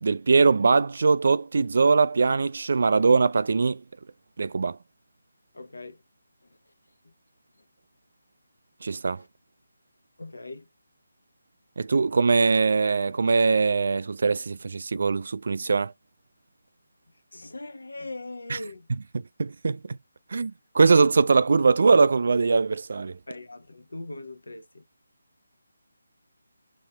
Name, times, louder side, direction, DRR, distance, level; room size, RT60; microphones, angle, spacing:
voice 1, 0.0-3.8 4.4-4.8 8.8-9.2 11.8-15.9 18.5-18.6 19.4-19.8 20.3-23.1, right 4 dB, 50° right, 0.3 m, -21 dB
voice 2, 5.5-6.0 7.0-7.1 7.6-7.7 9.2-9.3 10.2-10.7 17.3-18.9 23.3-24.8, left 2 dB, 70° left, 0.9 m, -40 dB
5.6 x 3.0 x 2.3 m
figure-of-eight pair, 150°, 0 cm